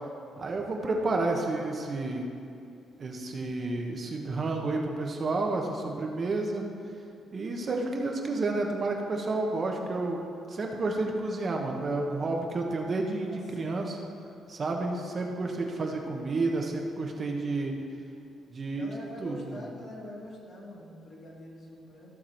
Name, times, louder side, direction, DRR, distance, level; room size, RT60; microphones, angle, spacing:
voice 1, 0.4-2.3 3.0-6.6 7.3-14.0 14.5-17.7 18.5-18.8 19.2-19.5, right 2 dB, 40° right, 1 dB, 1.1 m, -30 dB
voice 2, 13.3-13.8 14.7-15.2 18.7-22.2, left 1 dB, 55° left, -4 dB, 2.6 m, -45 dB
14.5 x 6.0 x 4.5 m, 2.6 s
cardioid pair, 125°, 0 cm